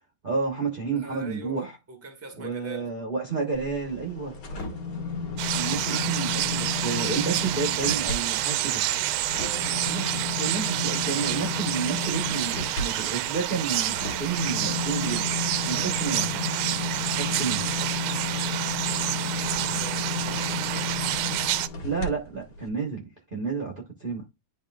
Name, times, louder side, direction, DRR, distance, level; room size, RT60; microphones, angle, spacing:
voice 1, 0.2-1.7 2.4-4.3 5.5-8.8 9.9-15.4 15.6-16.4 17.1-17.7 21.8-24.2, right 5 dB, 30° right, 1.1 m, -31 dB
voice 2, 0.9-2.9 4.5-4.8 9.4-10.0 15.7-16.0 18.2-21.6, right 4 dB, 10° right, 1.2 m, -43 dB
sound 1, 3.5-8.2 8.6-22.1 22.6-22.7, left 4 dB, 70° left, 2.4 m, -33 dB
sound 2, 5.4-21.7, right 13 dB, 85° right, 1.4 m, -28 dB
11.0 x 4.0 x 2.4 m
omnidirectional pair, 2.3 m